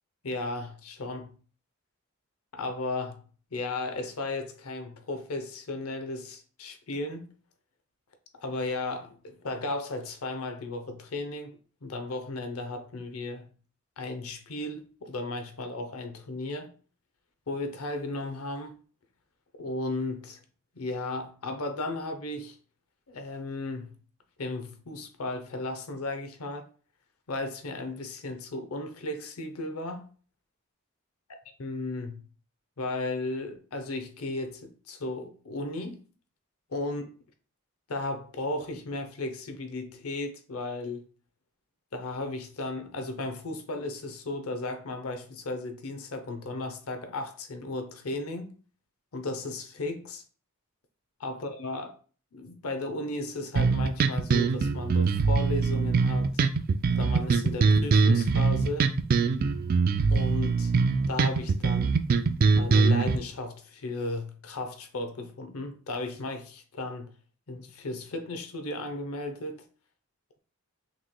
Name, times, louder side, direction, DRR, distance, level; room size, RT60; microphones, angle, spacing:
voice 1, 0.2-1.3 2.5-3.2 3.5-7.3 8.4-13.5 14.0-16.7 17.5-18.8 19.6-20.4 20.8-22.6 23.1-23.9 24.4-26.7 27.3-30.0 31.6-32.2 32.8-36.0 36.7-37.1 37.9-41.0 41.9-48.5 49.1-50.2 51.2-51.9 52.3-56.4 56.9-58.9 60.1-60.7 61.1-62.0 62.5-67.1 67.5-69.6, left 2 dB, 85° left, 0.7 m, -35 dB
sound 1, 53.6-63.2, right 4 dB, 45° right, 0.3 m, -23 dB
6.0 x 3.1 x 2.2 m
head